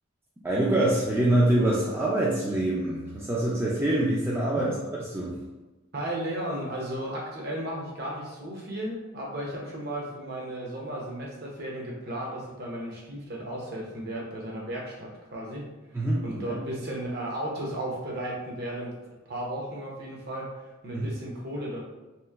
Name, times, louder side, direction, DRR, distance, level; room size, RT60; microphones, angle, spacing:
voice 1, 0.4-4.7 5.1-5.4 15.9-16.6 20.9-21.1, right 1 dB, 10° right, -5 dB, 0.3 m, -25 dB
voice 2, 5.9-15.7 16.2-18.9 19.3-20.5 20.8-21.8, right 1 dB, 50° right, -2 dB, 0.7 m, -34 dB
2.9 x 2.5 x 2.3 m, 1.1 s
head